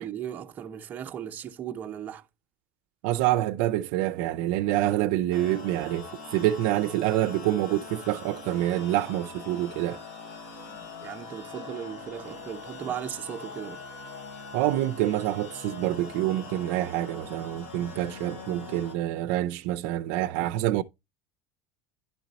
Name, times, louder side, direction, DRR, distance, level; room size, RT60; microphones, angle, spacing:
voice 1, 0.0-2.2 10.7-13.8, right 9 dB, 25° right, 0.8 m, -37 dB
voice 2, 3.0-10.0 14.5-20.8, right 14 dB, 65° right, 0.5 m, -27 dB
sound 1, 5.3-18.9, left 4 dB, 85° left, 3.9 m, -42 dB
11.0 x 4.3 x 4.0 m
cardioid pair, 170°, 7 cm